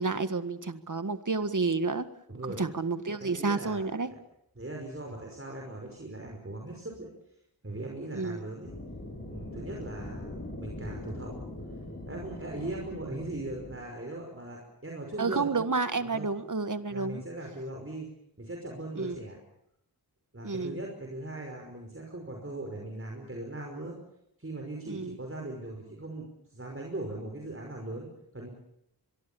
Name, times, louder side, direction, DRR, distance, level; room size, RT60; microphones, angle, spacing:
voice 1, 0.0-2.1 2.6-4.1 8.1-8.4 15.2-17.2 19.0-19.2 20.4-20.8 24.9-25.1, right 4 dB, 50° right, 11 dB, 1.7 m, -30 dB
voice 2, 2.3-2.6 3.2-3.9 4.6-7.1 7.6-8.7 9.3-11.4 12.0-15.5 16.0-16.3 16.9-18.1 18.4-19.4 20.3-24.0 24.4-28.5, right 2 dB, 35° right, 1 dB, 5.5 m, -39 dB
sound 1, 8.6-13.8, left 1 dB, 30° left, 7.3 m, -41 dB
24.0 x 23.0 x 7.1 m, 0.77 s
wide cardioid pair, 45°, 38 cm